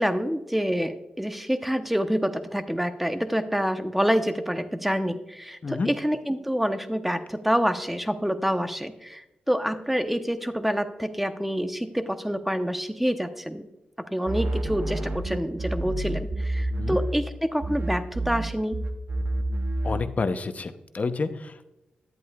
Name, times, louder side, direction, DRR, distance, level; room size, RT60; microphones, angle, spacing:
voice 1, 0.0-13.7 14.1-18.8, equal, 5° right, 9 dB, 0.8 m, -27 dB
sound 1, 14.3-17.3 17.6-20.2, right 1 dB, 60° right, 0.8 m, -29 dB
voice 2, 19.8-21.6, left 4 dB, 50° left, 10 dB, 0.7 m, -29 dB
10.5 x 8.3 x 2.3 m, 0.95 s
cardioid pair, 50°, 3 cm